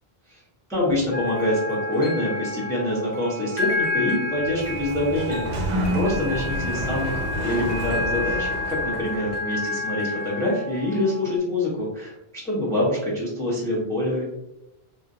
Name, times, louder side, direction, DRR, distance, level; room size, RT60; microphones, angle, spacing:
voice 1, 0.7-14.2, left 1 dB, 5° left, -6 dB, 0.8 m, -26 dB
sound 1, 1.1-11.4, left 2 dB, 35° left, 0.9 m, -30 dB
Sliding door, 4.3-9.5, equal, 50° right, 0.6 m, -29 dB
Bell, 5.3-6.9, equal, 65° left, 1.2 m, -41 dB
2.9 x 2.5 x 2.6 m, 0.89 s
omnidirectional pair, 1.1 m